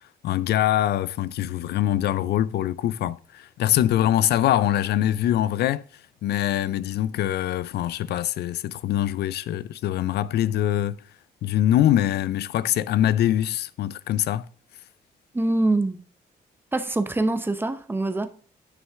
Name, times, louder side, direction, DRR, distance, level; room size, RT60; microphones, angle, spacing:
voice 1, 0.2-5.8 6.2-11.0 11.4-14.4, left 12 dB, 80° left, 0.4 m, -23 dB
voice 2, 15.3-16.0 16.7-18.3, right 2 dB, 15° right, 0.7 m, -24 dB
9.4 x 6.3 x 3.5 m
cardioid pair, 135°, 17 cm